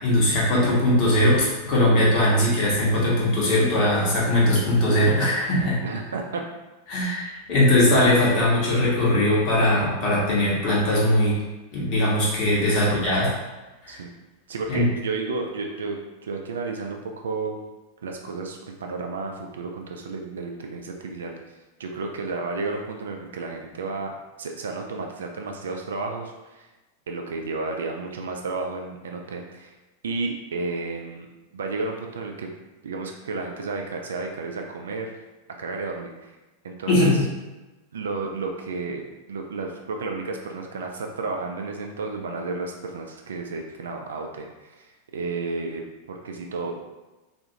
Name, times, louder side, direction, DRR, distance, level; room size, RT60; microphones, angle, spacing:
voice 1, 0.0-5.8 6.9-11.3 11.7-13.3 13.8-14.0 14.7-14.8 36.9-37.2, left 1 dB, 40° left, -5 dB, 1.0 m, -20 dB
voice 2, 5.8-6.4 12.6-13.3 13.9-14.1 14.5-16.0 16.2-17.6 18.0-21.4 21.8-24.1 24.4-26.7 27.1-29.7 30.0-32.5 32.8-35.1 35.6-36.4 36.6-37.2 37.9-44.9 45.1-46.8, right 3 dB, 65° right, 2 dB, 0.3 m, -32 dB
2.4 x 2.3 x 2.8 m, 1.1 s
figure-of-eight pair, 90°, 0 cm